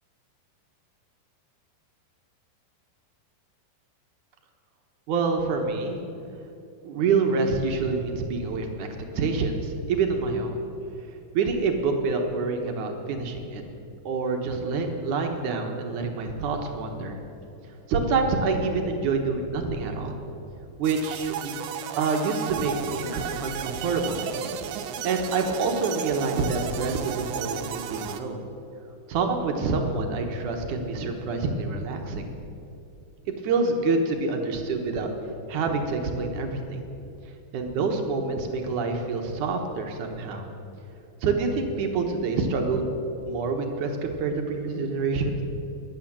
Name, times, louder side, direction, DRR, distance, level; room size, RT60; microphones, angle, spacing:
voice 1, 5.1-6.0 6.8-8.9 9.1-10.6 11.3-13.6 14.1-17.2 17.9-20.2 20.8-21.5 22.0-24.2 25.0-28.4 29.1-32.3 33.3-35.1 35.5-36.8 37.5-40.4 41.2-42.9 43.2-45.4, right 4 dB, 65° right, 3 dB, 2.1 m, -27 dB
sound 1, 20.8-28.2, right 9 dB, 85° right, 3.1 m, -34 dB
21.0 x 8.9 x 7.4 m, 2.8 s
omnidirectional pair, 5.0 m